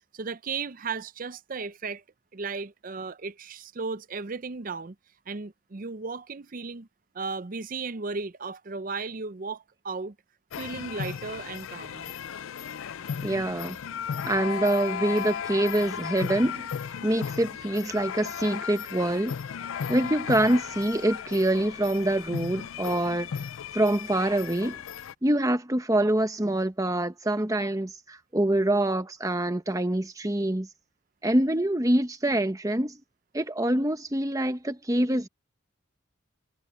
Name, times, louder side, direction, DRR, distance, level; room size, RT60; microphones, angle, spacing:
voice 1, 0.1-2.0 2.3-4.9 5.3-6.9 7.1-10.1 10.6-12.1, right 4 dB, 40° right, 0.6 m, -35 dB
sound 1, 10.5-25.1, left 7 dB, 80° left, 0.4 m, -35 dB
voice 2, 13.2-13.8 14.2-16.7 17.0-19.4 19.9-23.3 23.7-24.8 25.2-30.7 31.2-33.0 33.3-35.3, right 1 dB, 15° right, 1.1 m, -25 dB
head